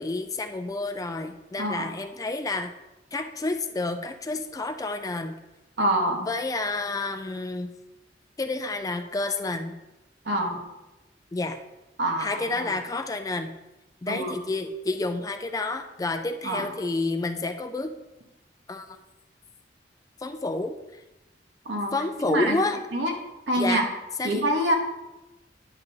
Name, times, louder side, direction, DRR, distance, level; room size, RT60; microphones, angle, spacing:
voice 1, 0.0-2.7 3.1-5.4 6.2-7.7 8.4-9.8 11.3-11.6 12.2-13.5 14.0-17.9 18.7-18.9 20.2-20.7 21.9-22.8 23.6-23.8 24.2-24.5, left 2 dB, 20° left, 8 dB, 0.3 m, -29 dB
voice 2, 1.6-1.9 5.8-6.3 10.2-10.6 12.0-12.7 14.1-14.4 16.4-16.7 21.6-21.9 22.3-22.6 22.9-23.1 23.5-23.9 24.2-24.7, right 1 dB, 75° right, 1 dB, 1.2 m, -26 dB
9.7 x 6.6 x 2.8 m, 1.0 s
head